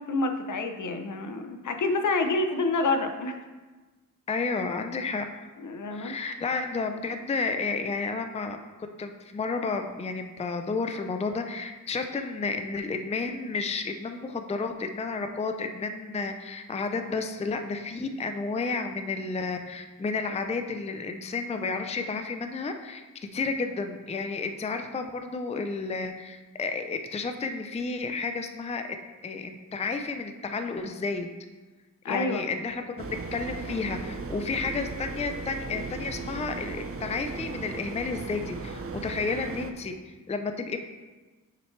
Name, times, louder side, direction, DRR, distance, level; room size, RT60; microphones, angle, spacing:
voice 1, 0.0-3.4 5.6-6.1 32.0-32.4, left 3 dB, 60° left, 6 dB, 0.7 m, -28 dB
voice 2, 4.3-5.2 5.9-8.6 9.0-28.9 29.2-31.3 32.1-40.8, left 4 dB, 20° left, 6 dB, 0.4 m, -31 dB
sound 1, 33.0-39.7, right 4 dB, 40° right, 0.6 m, -37 dB
6.4 x 5.9 x 3.2 m, 1.3 s
cardioid pair, 80°, 34 cm